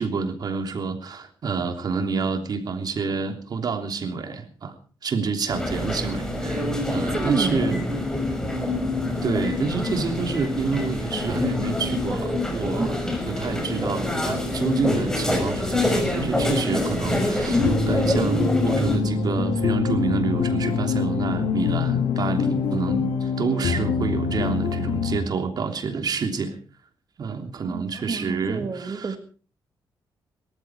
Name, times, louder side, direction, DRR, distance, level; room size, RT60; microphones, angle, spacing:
voice 1, 0.0-4.7 5.0-7.9 9.2-26.5 27.2-29.2, right 5 dB, 55° right, 5 dB, 3.2 m, -28 dB
sound 1, 5.5-19.0, left 1 dB, 5° left, 5.9 m, -26 dB
voice 2, 7.1-7.9 12.8-12.9 13.1-13.3 27.6-29.2, right 4 dB, 40° right, 8 dB, 2.6 m, -29 dB
sound 2, 17.6-25.2, left 5 dB, 80° left, 2.8 m, -24 dB
18.5 x 14.0 x 4.7 m, 0.40 s
cardioid pair, 90°, 8 cm